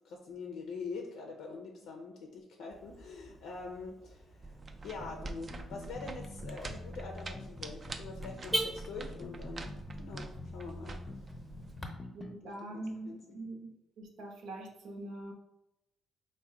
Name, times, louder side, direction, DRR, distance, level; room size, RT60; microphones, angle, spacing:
voice 1, 0.0-11.0 12.4-13.4, left 4 dB, 85° left, 2 dB, 0.5 m, -45 dB
Car / Alarm, 2.7-11.9, right 1 dB, 5° right, 0.8 m, -44 dB
sound 1, 4.4-11.8, right 3 dB, 40° right, 0.4 m, -46 dB
sound 2, 5.0-12.4, left 2 dB, 25° left, 0.4 m, -46 dB
voice 2, 12.1-13.1 13.3-15.3, right 2 dB, 80° right, 1 dB, 0.8 m, -43 dB
4.6 x 2.2 x 3.7 m, 0.91 s
cardioid pair, 90°, 0 cm